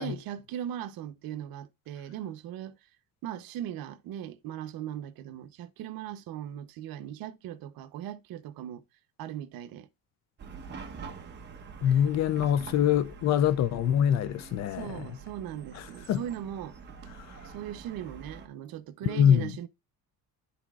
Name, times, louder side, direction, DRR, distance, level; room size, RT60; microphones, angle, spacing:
voice 1, 0.0-2.7 3.2-8.8 9.2-9.9 11.9-12.0 14.7-16.8 17.4-19.7, right 11 dB, 70° right, 0.9 m, -39 dB
Chatter / Car passing by / Traffic noise roadway noise, 10.4-18.5, right 5 dB, 30° right, 1.0 m, -46 dB
voice 2, 11.8-15.1 15.7-15.8 16.1-16.2 17.1-17.4 19.0-19.5, left 9 dB, 50° left, 0.4 m, -24 dB
12.5 x 4.2 x 2.4 m
cardioid pair, 165°, 37 cm